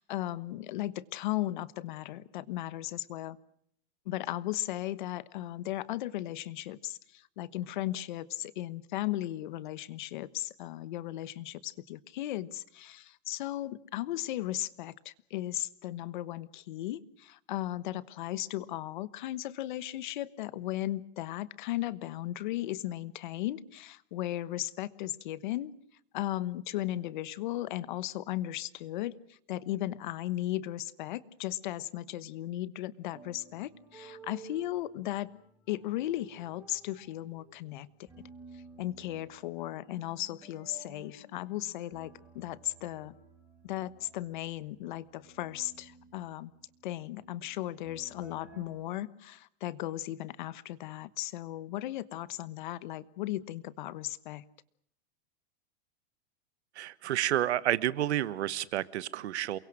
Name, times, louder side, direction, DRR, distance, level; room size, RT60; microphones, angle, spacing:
voice 1, 0.0-3.4 4.0-25.7 26.1-35.3 35.7-38.1 38.5-43.1 43.6-46.5 46.8-54.4, left 14 dB, 45° left, 17 dB, 1.2 m, -36 dB
sound 1, 33.1-48.6, right 3 dB, 5° right, 4.5 m, -55 dB
voice 2, 56.7-59.6, right 13 dB, 85° right, 17 dB, 1.5 m, -30 dB
28.5 x 23.5 x 6.3 m, 0.67 s
supercardioid pair, 180°, 32 cm